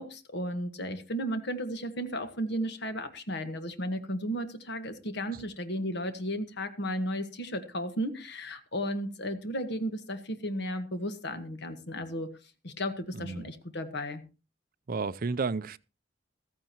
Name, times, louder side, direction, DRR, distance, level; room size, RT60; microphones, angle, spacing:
voice 1, 0.0-12.3 12.6-14.2, equal, 65° left, 1.5 m, -34 dB
voice 2, 13.1-13.5 14.9-15.8, right 4 dB, 50° right, 0.5 m, -32 dB
14.5 x 14.5 x 3.0 m
head